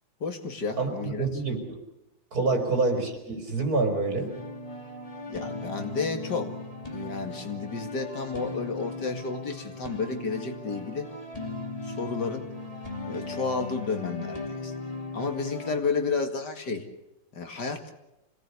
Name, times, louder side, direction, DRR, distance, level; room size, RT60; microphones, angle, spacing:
voice 1, 0.2-1.3 2.5-2.6 5.3-6.5 6.9-11.1 11.8-12.5 13.1-14.7 15.1-16.9 17.3-17.9, left 4 dB, 60° left, 5 dB, 2.7 m, -31 dB
voice 2, 0.8-1.8 2.3-4.3, right 3 dB, 50° right, 4 dB, 4.8 m, -27 dB
sound 1, 4.2-15.8, left 2 dB, 20° left, 3.0 m, -38 dB
25.5 x 18.5 x 8.3 m, 0.91 s
omnidirectional pair, 2.0 m